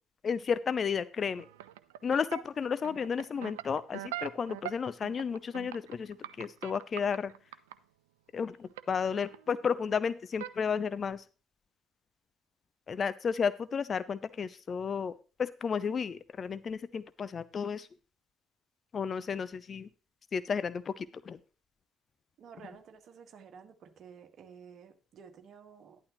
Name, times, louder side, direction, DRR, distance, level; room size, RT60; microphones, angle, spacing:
voice 1, 0.2-1.5 2.0-7.3 8.3-11.2 12.9-15.1 15.4-17.9 18.9-19.9 20.3-21.4, left 6 dB, 40° left, 15 dB, 0.6 m, -32 dB
sound 1, 1.4-7.8 8.8-9.0 9.3-10.0 10.3-10.6 10.9-11.1, right 14 dB, 75° right, 0.5 m, -42 dB
voice 2, 22.4-26.0, right 6 dB, 50° right, 6 dB, 1.7 m, -52 dB
11.5 x 10.5 x 3.0 m, 0.34 s
figure-of-eight pair, 50°, 0 cm